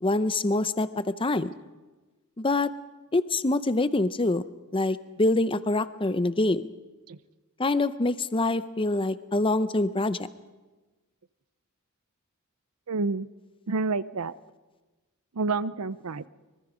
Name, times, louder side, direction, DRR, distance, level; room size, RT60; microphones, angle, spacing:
voice 1, 0.0-1.5 2.4-2.7 3.1-4.4 4.7-6.7 7.6-10.3, left 2 dB, 25° left, 13 dB, 0.7 m, -25 dB
voice 2, 12.9-13.3 13.7-14.3 15.3-16.3, right 3 dB, 75° right, 16 dB, 0.7 m, -29 dB
24.0 x 23.0 x 5.1 m, 1.2 s
head